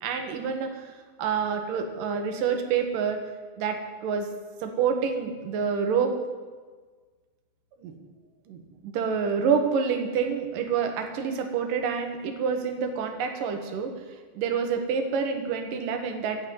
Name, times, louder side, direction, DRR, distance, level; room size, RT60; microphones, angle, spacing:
voice 1, 0.0-0.9 1.2-3.2 3.6-4.3 4.6-6.2 7.8-7.9 8.5-13.9 14.3-16.4, right 6 dB, 65° right, 5 dB, 2.9 m, -27 dB
12.5 x 9.2 x 9.4 m, 1.4 s
omnidirectional pair, 4.4 m